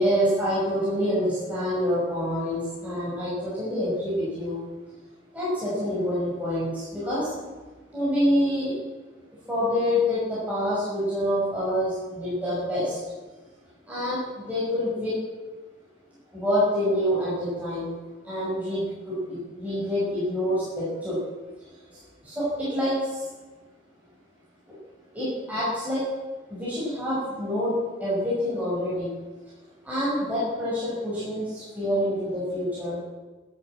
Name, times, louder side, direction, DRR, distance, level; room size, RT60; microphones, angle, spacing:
voice 1, 0.0-4.6 5.3-7.5 7.9-8.8 9.5-13.0 13.9-15.1 16.3-18.0 18.2-21.2 21.9-23.3 24.7-24.8 25.1-26.0 26.5-29.1 29.8-33.0, equal, 10° right, -10 dB, 5.9 m, -27 dB
13.0 x 12.5 x 7.5 m, 1.3 s
head